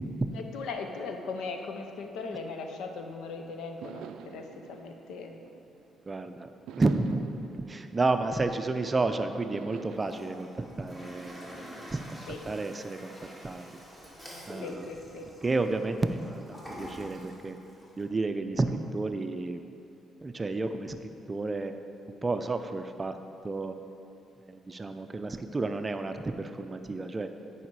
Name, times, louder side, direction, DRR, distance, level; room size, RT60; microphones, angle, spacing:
voice 1, 0.3-5.4 12.3-12.4 14.6-15.3, left 4 dB, 85° left, 4 dB, 0.7 m, -38 dB
sound 1, 3.8-6.1 6.7-8.9 9.5-10.0, right 8 dB, 85° right, 0.3 m, -47 dB
voice 2, 6.1-6.5 6.8-12.2 12.5-13.1 13.4-13.6 14.5-14.9 15.4-17.6 18.0-18.7 18.9-19.6 20.2-21.0 21.3-21.7 22.2-23.2 23.4-23.7 24.5-27.3, right 3 dB, 25° right, 8 dB, 0.5 m, -31 dB
Toilet flush, 9.8-18.0, equal, 15° left, 2.1 m, -46 dB
9.8 x 5.0 x 4.7 m, 2.7 s
cardioid pair, 90°, 0 cm